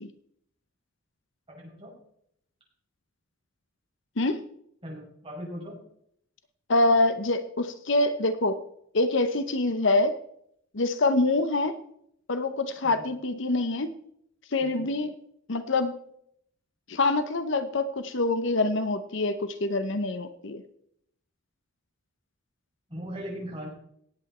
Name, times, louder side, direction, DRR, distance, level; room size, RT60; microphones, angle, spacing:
voice 1, 1.5-1.9 4.8-5.8 12.8-13.0 14.6-14.9 22.9-23.7, equal, 25° right, -4 dB, 6.4 m, -39 dB
voice 2, 6.7-8.6 8.9-10.1 10.7-11.8 12.3-14.0 14.5-15.1 15.5-16.0 16.9-20.6, left 2 dB, 60° left, 11 dB, 0.8 m, -25 dB
18.5 x 8.2 x 4.3 m, 0.71 s
head